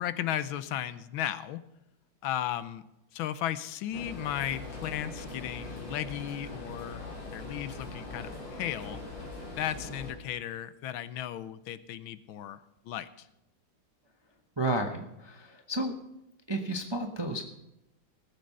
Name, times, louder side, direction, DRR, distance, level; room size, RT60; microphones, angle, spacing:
voice 1, 0.0-1.6 2.2-2.8 3.1-7.0 7.3-9.0 9.6-12.6 12.9-13.1, left 11 dB, 85° left, 14 dB, 1.5 m, -35 dB
sound 1, 3.9-10.1, left 2 dB, 65° left, 3.6 m, -41 dB
voice 2, 14.6-15.9 16.5-17.4, right 1 dB, 25° right, 4 dB, 0.6 m, -32 dB
18.0 x 7.6 x 5.5 m, 0.88 s
omnidirectional pair, 2.2 m